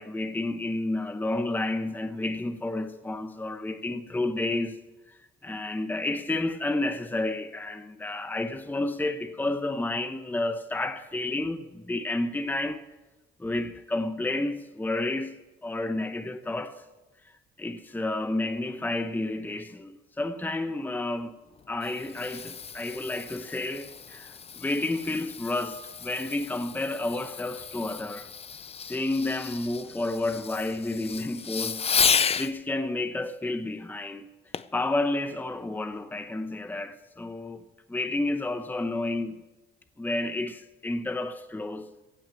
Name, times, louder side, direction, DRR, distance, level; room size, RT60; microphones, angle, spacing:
voice 1, 0.0-4.8 5.1-12.8 13.4-15.4 15.6-16.8 17.6-21.4 21.7-28.3 28.8-34.3 34.7-37.6 37.9-39.4 40.0-41.9, left 2 dB, 10° left, 0.8 m, -31 dB
Fireworks, 21.5-32.5 34.5-34.8 35.4-35.5, left 6 dB, 30° left, 0.5 m, -32 dB
16.5 x 6.1 x 8.7 m
cardioid pair, 90°, 20 cm